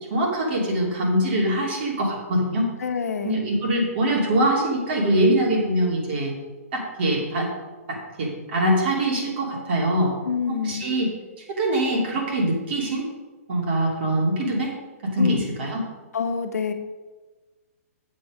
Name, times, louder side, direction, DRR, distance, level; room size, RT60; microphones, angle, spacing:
voice 1, 0.1-2.7 3.2-6.3 6.7-7.5 7.9-10.1 10.7-11.1 11.6-13.1 13.5-14.7 15.0-15.8, right 1 dB, 45° right, -1 dB, 2.7 m, -23 dB
voice 2, 2.8-3.4 10.2-10.8 15.2-15.5 16.1-16.7, left 6 dB, 85° left, 6 dB, 1.1 m, -26 dB
7.6 x 7.3 x 5.0 m, 1.3 s
hypercardioid pair, 155°, 8 cm